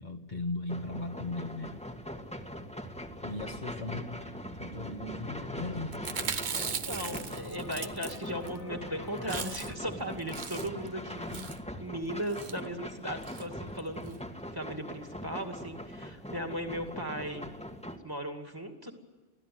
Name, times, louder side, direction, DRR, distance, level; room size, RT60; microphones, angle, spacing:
voice 1, 0.0-1.7 3.2-4.2 4.6-6.0, left 2 dB, 40° left, 3 dB, 1.7 m, -37 dB
sound 1, 0.7-18.0, equal, 5° left, 1.8 m, -42 dB
sound 2, 2.8-9.8, right 1 dB, 65° left, 4.2 m, -48 dB
Chewing mastication, 5.9-8.6 8.9-9.0 9.2-9.9 10.2-10.9 11.3-11.6 12.3-12.6 13.2-13.5 13.8-13.9 14.1-14.2, right 6 dB, 45° right, 0.9 m, -38 dB
voice 2, 6.6-11.5 11.8-14.2 14.5-17.5 18.0-18.9, equal, 20° right, 4 dB, 2.5 m, -37 dB
24.5 x 16.0 x 9.5 m, 1.3 s
omnidirectional pair, 1.2 m